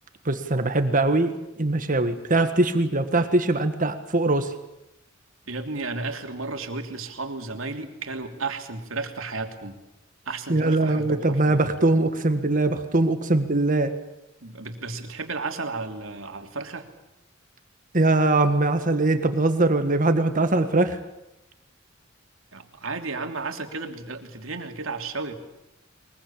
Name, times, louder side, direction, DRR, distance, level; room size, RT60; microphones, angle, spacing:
voice 1, 0.2-4.5 10.5-13.9 17.9-21.0, right 2 dB, 40° right, 8 dB, 1.7 m, -22 dB
voice 2, 5.5-9.8 10.2-11.6 14.4-16.8 22.5-25.3, right 3 dB, 85° right, 5 dB, 3.0 m, -33 dB
23.0 x 22.0 x 8.7 m, 0.90 s
head